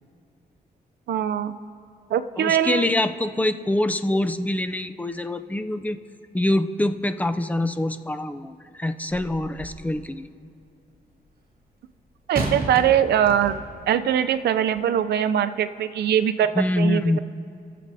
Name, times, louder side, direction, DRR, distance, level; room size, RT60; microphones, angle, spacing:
voice 1, 1.1-1.6 2.1-2.9 12.3-13.6 13.9-16.5 16.8-17.2, right 9 dB, 85° right, 11 dB, 0.5 m, -22 dB
voice 2, 2.4-6.0 6.3-10.3 16.6-17.2, left 1 dB, 10° left, 10 dB, 0.4 m, -25 dB
sound 1, 9.1-9.9 12.3-13.9 14.7-14.8, right 2 dB, 60° right, 2.1 m, -32 dB
22.5 x 7.5 x 2.7 m, 2.4 s
cardioid pair, 110°, 17 cm